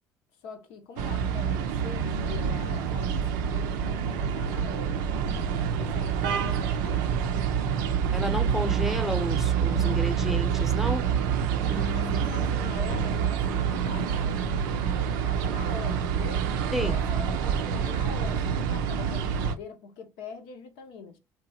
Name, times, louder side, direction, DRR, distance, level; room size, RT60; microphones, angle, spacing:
voice 1, 0.4-5.0 5.6-7.6 9.7-10.2 11.6-14.8 15.0-16.4 16.8-21.2, left 4 dB, 75° left, 0.6 m, -43 dB
sound 1, 1.0-19.5, right 7 dB, 80° right, 0.4 m, -27 dB
voice 2, 8.1-11.0 11.7-12.4 16.7-17.0, equal, 5° right, 0.7 m, -32 dB
2.9 x 2.3 x 2.7 m
hypercardioid pair, 55°, 10 cm